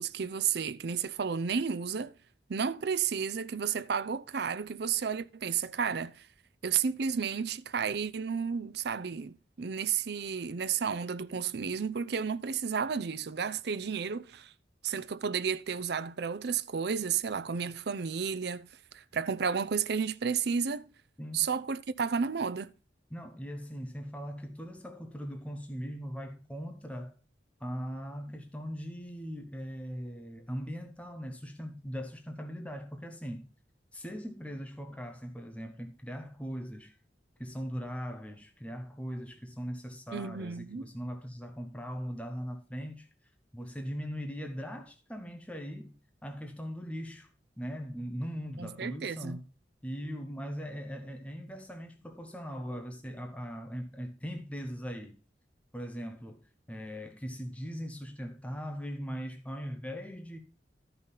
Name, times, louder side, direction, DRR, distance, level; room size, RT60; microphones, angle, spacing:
voice 1, 0.0-2.1 2.5-6.3 6.6-14.5 14.8-18.7 18.9-20.9 21.3-22.7 40.1-40.8 48.6-49.4, right 6 dB, 65° right, 0.6 m, -32 dB
voice 2, 23.1-27.1 27.6-33.5 33.9-37.0 37.4-46.0 46.2-47.3 47.6-49.5 49.8-55.2 55.7-60.4, equal, 10° left, 1.0 m, -40 dB
13.0 x 5.6 x 4.0 m
head